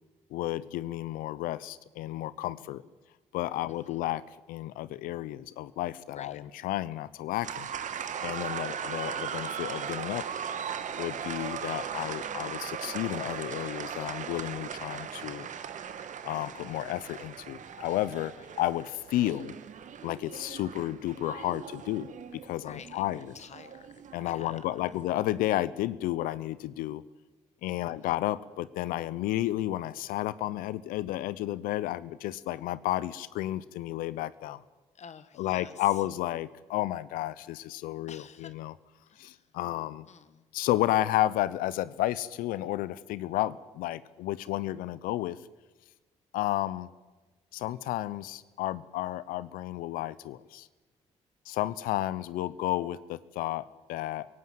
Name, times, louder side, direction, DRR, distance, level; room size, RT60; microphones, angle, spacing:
voice 1, 0.3-2.8 3.3-7.7 8.0-10.2 11.0-15.5 16.2-19.5 20.0-23.3 24.1-27.0 27.6-34.6 35.4-38.7 39.2-40.1 40.5-45.4 46.3-46.9 47.5-50.7 51.5-54.3, left 14 dB, 75° left, 18 dB, 0.8 m, -32 dB
voice 2, 3.7-4.0 6.1-6.4 18.4-18.5 22.6-24.8 27.8-28.1 35.0-35.7 38.1-38.5 39.1-39.4 40.1-40.4, left 7 dB, 50° left, 13 dB, 1.4 m, -49 dB
sound 1, 7.4-25.1, right 8 dB, 60° right, 1.6 m, -38 dB
23.5 x 17.5 x 8.0 m, 1.2 s
hypercardioid pair, 50°, 15 cm